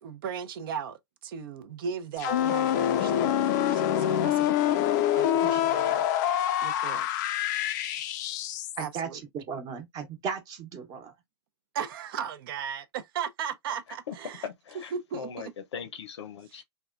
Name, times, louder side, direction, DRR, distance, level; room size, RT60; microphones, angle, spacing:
voice 1, 0.0-4.8 5.1-6.1 6.6-7.1 8.8-9.2 11.7-14.5 14.9-15.5 16.5-16.6, right 7 dB, 55° right, 0.6 m, -37 dB
sound 1, 2.2-8.9, left 11 dB, 40° left, 0.4 m, -26 dB
voice 2, 8.8-9.1 9.3-11.1, right 6 dB, 25° right, 0.9 m, -35 dB
voice 3, 14.4-14.9 15.2-16.6, left 7 dB, 85° left, 0.7 m, -39 dB
3.4 x 2.2 x 2.4 m
hypercardioid pair, 145°, 14 cm